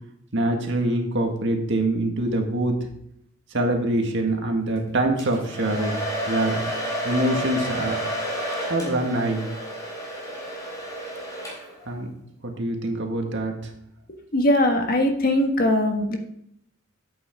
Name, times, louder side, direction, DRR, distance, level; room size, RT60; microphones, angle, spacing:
voice 1, 0.3-2.8 3.5-6.0 6.3-6.6 7.0-8.0 8.7-9.4 11.9-12.1 12.4-13.5, right 1 dB, 60° right, 2 dB, 1.8 m, -24 dB
Domestic sounds home sounds, 5.2-11.9, equal, 15° left, 3.7 m, -30 dB
voice 2, 14.3-16.2, left 1 dB, 45° left, 3 dB, 1.5 m, -20 dB
10.5 x 8.6 x 3.6 m, 0.73 s
head